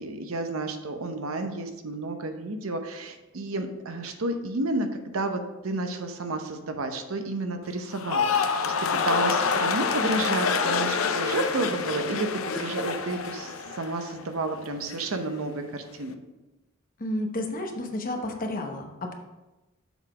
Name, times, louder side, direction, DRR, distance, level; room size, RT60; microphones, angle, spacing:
voice 1, 0.0-4.9 5.1-8.7 9.0-16.2, right 2 dB, 75° right, 6 dB, 0.7 m, -31 dB
sound 1, 7.9-14.2 14.5-15.1, left 5 dB, 70° left, 0.5 m, -27 dB
voice 2, 17.0-19.1, left 1 dB, 40° left, 3 dB, 0.9 m, -31 dB
7.0 x 4.1 x 4.8 m, 1.1 s
head